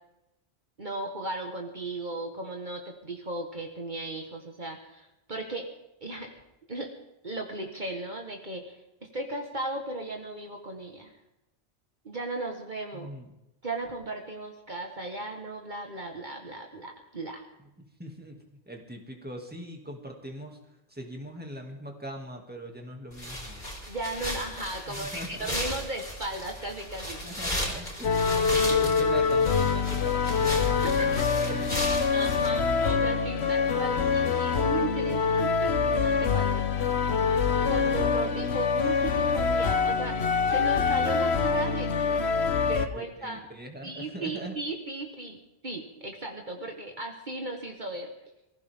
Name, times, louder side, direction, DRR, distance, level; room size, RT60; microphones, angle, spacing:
voice 1, 0.8-5.7 6.0-6.3 6.7-6.9 7.2-8.8 9.1-11.2 12.1-13.1 13.6-17.4 23.9-27.2 27.6-27.7 28.3-28.8 30.7-37.0 37.7-40.2 40.5-41.9 42.7-43.4 43.8-48.1, right 2 dB, 45° right, 2 dB, 1.8 m, -36 dB
voice 2, 12.9-13.3 17.8-20.6 20.9-23.7 24.9-25.5 27.2-30.9 31.5-31.6 42.8-44.6, right 1 dB, 10° right, 1 dB, 2.5 m, -41 dB
sound 1, 23.1-32.5, left 1 dB, 45° left, 4.5 m, -35 dB
sound 2, 28.0-42.9, left 5 dB, 75° left, 1.3 m, -25 dB
23.0 x 15.5 x 3.8 m, 0.90 s
omnidirectional pair, 1.1 m